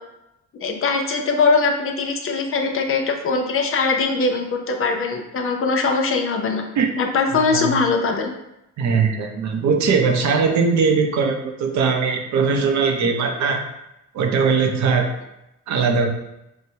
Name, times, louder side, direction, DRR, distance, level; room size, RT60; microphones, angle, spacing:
voice 1, 0.6-6.6 7.0-8.3, left 4 dB, 45° left, 3 dB, 0.6 m, -21 dB
voice 2, 8.8-13.6 14.1-15.1 15.7-16.1, right 5 dB, 70° right, 4 dB, 0.6 m, -20 dB
4.6 x 2.1 x 2.7 m, 0.88 s
cardioid pair, 90°, 30 cm